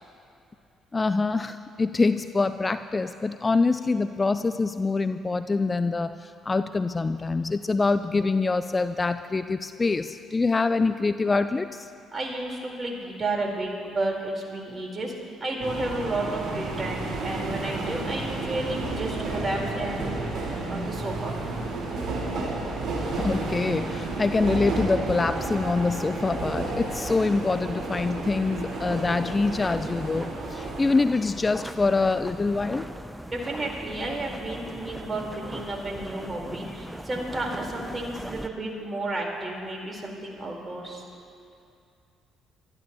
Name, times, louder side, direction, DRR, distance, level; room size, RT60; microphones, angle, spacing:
voice 1, 0.9-11.9 23.1-32.9, left 3 dB, 30° left, 11 dB, 0.4 m, -25 dB
voice 2, 12.1-15.1 15.4-20.2 20.7-21.3 33.3-41.0, right 2 dB, 30° right, -1 dB, 4.1 m, -32 dB
sound 1, 15.6-30.9, right 3 dB, 55° right, 4.3 m, -32 dB
sound 2, 25.3-38.5, right 1 dB, 10° right, 0.8 m, -40 dB
25.5 x 13.5 x 3.0 m, 2.5 s
hypercardioid pair, 50°, 0 cm